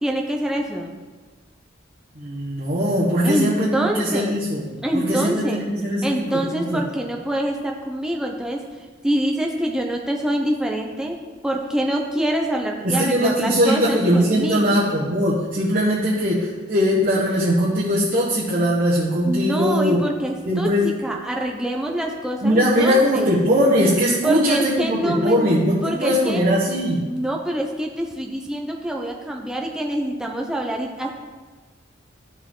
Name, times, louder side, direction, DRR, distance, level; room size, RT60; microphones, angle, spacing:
voice 1, 0.0-1.0 3.2-4.4 4.8-5.6 6.0-11.2 11.4-14.8 19.2-23.3 24.2-25.5 25.8-26.4 27.1-31.1, right 1 dB, 5° right, 0 dB, 0.6 m, -25 dB
voice 2, 2.1-6.8 12.8-20.0 20.5-20.9 22.4-27.1, equal, 45° right, -8 dB, 1.3 m, -20 dB
12.5 x 5.1 x 3.8 m, 1.4 s
head